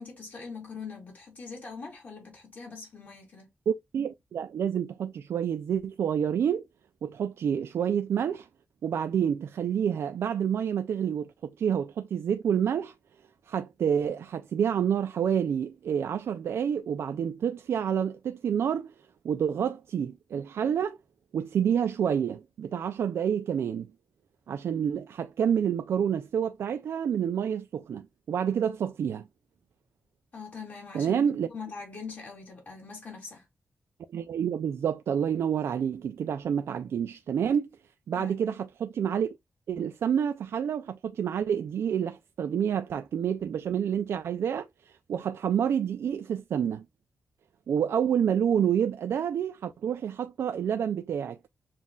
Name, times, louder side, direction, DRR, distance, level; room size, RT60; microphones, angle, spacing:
voice 1, 0.0-3.5 30.3-33.4 38.1-38.5, left 5 dB, 40° left, 2.4 m, -42 dB
voice 2, 3.7-6.6 7.0-8.5 8.8-12.9 13.5-18.9 19.2-21.0 21.3-23.9 24.5-29.3 30.9-31.5 34.1-37.7 38.1-39.3 39.7-46.8 47.7-51.4, right 8 dB, 80° right, 0.3 m, -28 dB
7.2 x 2.5 x 2.2 m
wide cardioid pair, 120°, 4 cm